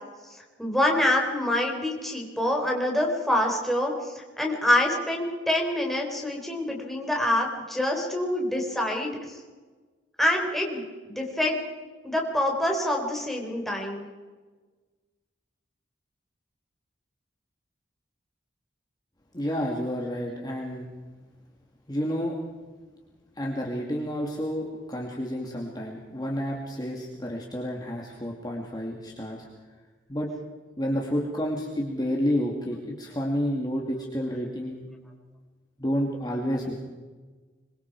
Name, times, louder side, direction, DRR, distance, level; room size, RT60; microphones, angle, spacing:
voice 1, 0.6-9.1 10.2-11.6 12.0-14.1, left 1 dB, ahead, 0 dB, 4.0 m, -26 dB
voice 2, 19.3-20.9 21.9-22.3 23.4-29.5 30.1-30.3 30.8-34.9 35.8-36.7, equal, 20° left, -1 dB, 2.3 m, -30 dB
25.5 x 23.0 x 4.8 m, 1.3 s
head